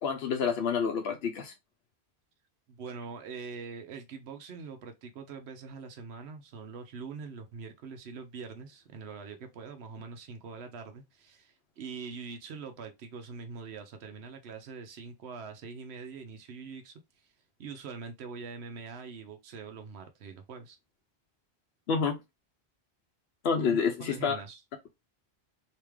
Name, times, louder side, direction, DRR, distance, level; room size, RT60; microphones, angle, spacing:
voice 1, 0.0-1.5 21.9-22.2 23.4-24.4, left 6 dB, 75° left, 0.9 m, -28 dB
voice 2, 2.7-17.0 17.6-20.8 23.6-24.6, right 5 dB, 90° right, 1.0 m, -43 dB
3.5 x 2.9 x 3.1 m
omnidirectional pair, 1.1 m